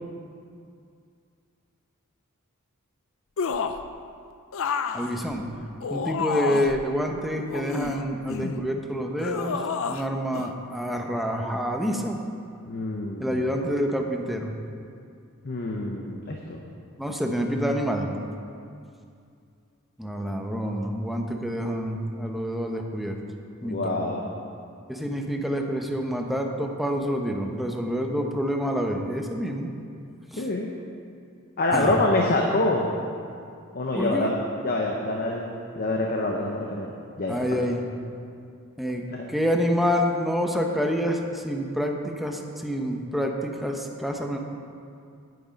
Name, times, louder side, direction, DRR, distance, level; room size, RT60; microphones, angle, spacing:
sound 1, 3.4-3.9 4.5-6.8 7.5-8.6 9.2-10.1 10.3-10.5, left 5 dB, 60° left, 0.5 m, -30 dB
voice 1, 4.9-5.5 5.9-9.6 9.9-12.2 13.2-14.5 17.0-18.1 20.0-23.2 23.6-24.0 24.9-29.7 30.3-30.4 31.7-31.9 33.9-34.3 37.3-37.8 38.8-44.4, equal, ahead, 2 dB, 0.8 m, -27 dB
voice 2, 12.7-13.4 15.4-16.6 23.6-24.3 30.4-30.7 31.6-32.9 33.7-34.4 34.6-36.9 37.2-37.6 39.1-39.2, left 2 dB, 45° left, 0 dB, 0.8 m, -26 dB
9.7 x 9.3 x 5.1 m, 2.4 s
head